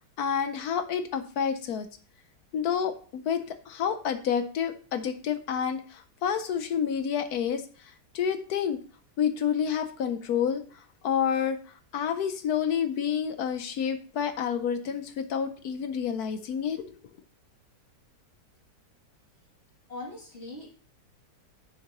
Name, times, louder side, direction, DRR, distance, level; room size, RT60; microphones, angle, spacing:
voice 1, 0.2-1.9 2.5-7.6 8.1-8.8 9.2-10.6 11.0-11.6 11.9-16.8, left 8 dB, 65° left, 9 dB, 1.1 m, -29 dB
voice 2, 19.9-20.8, left 2 dB, 35° left, -3 dB, 2.9 m, -41 dB
10.0 x 6.6 x 3.0 m, 0.41 s
omnidirectional pair, 1.9 m